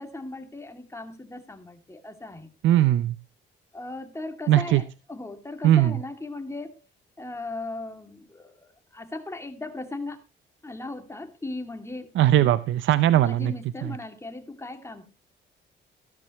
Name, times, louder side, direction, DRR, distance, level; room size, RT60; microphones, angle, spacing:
voice 1, 0.0-2.5 3.7-6.8 7.2-10.2 10.6-12.1 13.1-15.1, left 2 dB, 15° left, 5 dB, 2.6 m, -37 dB
voice 2, 2.6-3.2 4.5-4.8 5.6-6.0 12.2-13.5 13.8-13.9, right 13 dB, 75° right, 14 dB, 0.7 m, -19 dB
14.5 x 12.5 x 3.1 m, 0.28 s
cardioid pair, 90°, 20 cm